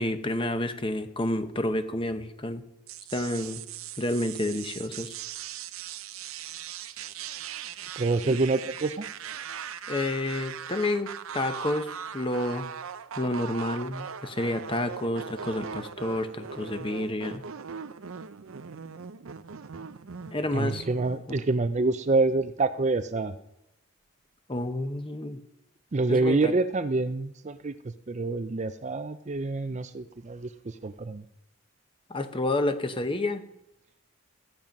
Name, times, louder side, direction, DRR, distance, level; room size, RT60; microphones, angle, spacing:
voice 1, 0.0-2.6 3.1-3.6 4.0-5.1 8.2-8.4 9.9-11.9 12.1-12.7 13.2-17.4 20.3-20.8 21.3-21.4 24.5-25.4 26.1-26.5 32.1-33.4, left 1 dB, 25° left, 9 dB, 0.9 m, -29 dB
sound 1, 2.9-21.3, right 7 dB, 80° right, 0.6 m, -40 dB
voice 2, 8.0-9.1 20.5-23.3 25.9-31.2, right 3 dB, 35° right, 11 dB, 0.5 m, -27 dB
15.0 x 8.9 x 5.3 m, 0.84 s
head